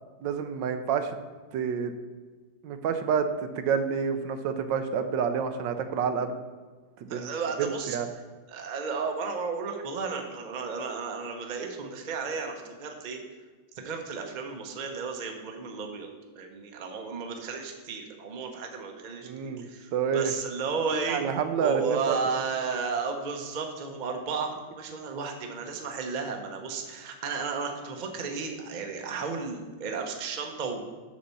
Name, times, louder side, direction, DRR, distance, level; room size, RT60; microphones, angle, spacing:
voice 1, 0.2-1.2 1.5-1.9 2.6-3.3 3.6-6.4 7.0-7.3 7.6-8.1 19.2-20.3 20.9-22.2, right 7 dB, 80° right, 8 dB, 1.3 m, -28 dB
voice 2, 7.1-8.0 8.5-13.2 13.7-16.1 16.3-21.2 21.6-30.8, right 5 dB, 40° right, 3 dB, 0.7 m, -33 dB
7.6 x 4.2 x 6.9 m, 1.4 s
omnidirectional pair, 2.0 m